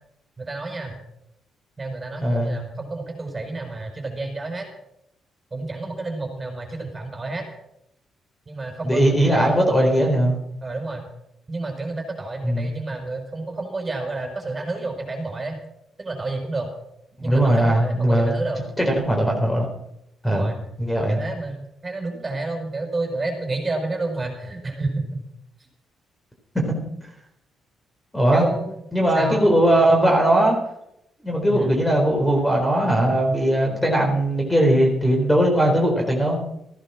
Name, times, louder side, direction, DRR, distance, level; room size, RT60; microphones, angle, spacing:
voice 1, 0.4-1.0 1.8-4.7 5.5-7.5 8.5-9.6 10.6-11.1 11.5-15.6 16.0-16.7 17.2-18.6 20.2-20.6 21.1-25.2 28.3-28.9 29.1-29.5 31.5-31.8, right 2 dB, 25° right, 3 dB, 5.2 m, -30 dB
voice 2, 2.2-2.6 8.8-10.4 12.4-12.7 17.2-18.4 18.8-19.7 20.2-20.5 20.8-21.2 26.5-26.7 28.1-28.5 28.9-30.6 31.2-36.4, right 1 dB, 10° left, 1 dB, 4.1 m, -19 dB
15.0 x 11.0 x 6.2 m, 0.78 s
cardioid pair, 90°, 0 cm